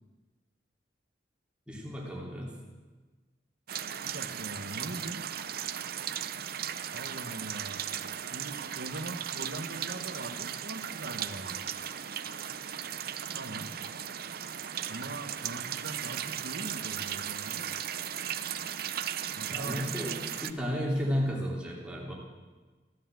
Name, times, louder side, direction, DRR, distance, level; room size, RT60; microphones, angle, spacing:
voice 1, 1.7-2.5 19.5-22.1, equal, 5° right, -3 dB, 3.2 m, -33 dB
sound 1, 3.7-20.5, right 9 dB, 55° right, 0.6 m, -37 dB
voice 2, 4.0-5.2 6.9-7.8 8.3-11.6 13.3-13.7 14.9-17.7 19.3-19.8, right 2 dB, 70° right, 7 dB, 1.3 m, -41 dB
15.5 x 11.5 x 7.5 m, 1.3 s
head